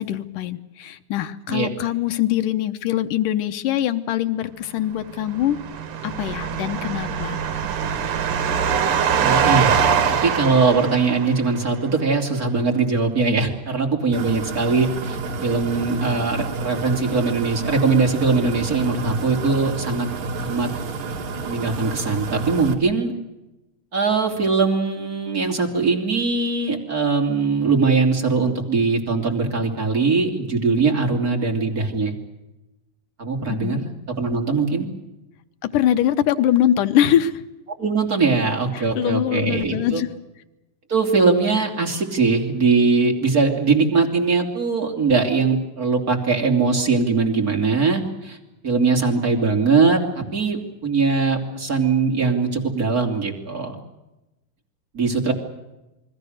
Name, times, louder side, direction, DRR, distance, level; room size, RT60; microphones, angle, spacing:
voice 1, 0.0-5.6 6.0-7.4 33.5-33.8 35.7-37.4 38.7-40.1, left 11 dB, 90° left, 9 dB, 2.6 m, -22 dB
sound 1, 5.3-11.6, right 7 dB, 80° right, 3.3 m, -23 dB
voice 2, 9.2-9.8 10.1-20.1 20.4-20.7 21.4-23.1 23.9-32.1 33.2-34.9 37.8-40.0 40.9-48.4 48.6-53.8 54.9-55.3, right 4 dB, 30° right, 2 dB, 3.2 m, -21 dB
sound 2, 14.1-22.7, right 3 dB, 65° right, 3.4 m, -29 dB
29.0 x 21.5 x 6.5 m, 1.0 s
omnidirectional pair, 3.5 m